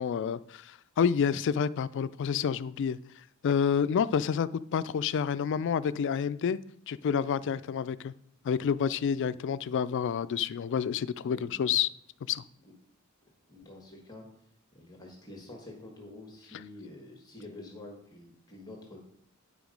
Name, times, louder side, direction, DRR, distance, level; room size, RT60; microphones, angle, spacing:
voice 1, 0.0-3.0 3.4-6.6 6.9-8.1 8.4-11.9 12.3-12.4, left 7 dB, 55° left, 17 dB, 0.3 m, -29 dB
voice 2, 11.3-11.6 12.6-12.7 13.5-14.2 14.7-19.0, left 2 dB, 20° left, 0 dB, 1.5 m, -48 dB
9.6 x 5.0 x 5.1 m, 0.68 s
head